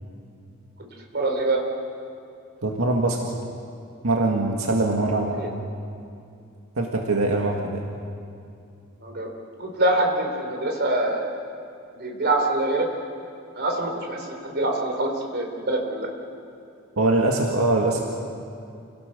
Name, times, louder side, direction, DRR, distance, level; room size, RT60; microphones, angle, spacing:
voice 1, 1.1-1.6 5.3-5.5 9.0-9.3 9.6-11.4 11.9-12.9 13.6-16.1, right 2 dB, 50° right, 1 dB, 4.0 m, -25 dB
voice 2, 2.6-3.2 4.0-5.4 6.8-7.9 17.0-18.0, right 2 dB, 85° right, 0 dB, 1.9 m, -22 dB
29.0 x 18.0 x 6.7 m, 2.5 s
head